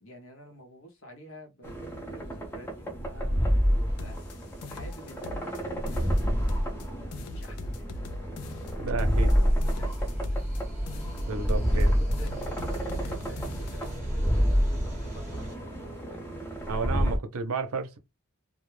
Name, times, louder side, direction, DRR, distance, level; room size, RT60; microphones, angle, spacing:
voice 1, 0.0-8.0 9.1-10.5 11.7-16.3, right 1 dB, 60° left, 0.8 m, -49 dB
sound 1, 1.6-17.2, equal, 10° left, 0.6 m, -29 dB
sound 2, 4.0-5.6 5.9-6.9 7.1-10.6 10.9-11.9 12.1-14.0, left 2 dB, 80° left, 0.4 m, -41 dB
voice 2, 8.8-9.3 11.3-11.9 16.7-18.0, right 4 dB, 70° right, 0.5 m, -32 dB
sound 3, 9.2-15.5, equal, 10° right, 1.0 m, -33 dB
2.2 x 2.1 x 3.1 m
head